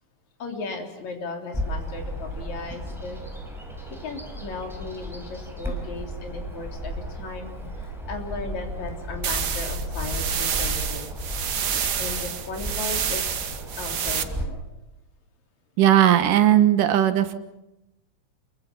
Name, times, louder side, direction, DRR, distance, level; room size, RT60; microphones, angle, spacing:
voice 1, 0.4-3.2 4.0-11.1 12.0-13.2 13.8-14.6, left 3 dB, 60° left, 3 dB, 4.6 m, -36 dB
Bird vocalization bird call bird song, 1.5-14.4, equal, ahead, 5.4 m, -34 dB
sound 1, 9.2-14.2, right 8 dB, 70° right, 0.9 m, -28 dB
voice 2, 15.8-17.4, right 11 dB, 90° right, 10 dB, 2.9 m, -17 dB
28.5 x 23.0 x 6.0 m, 0.93 s
omnidirectional pair, 3.6 m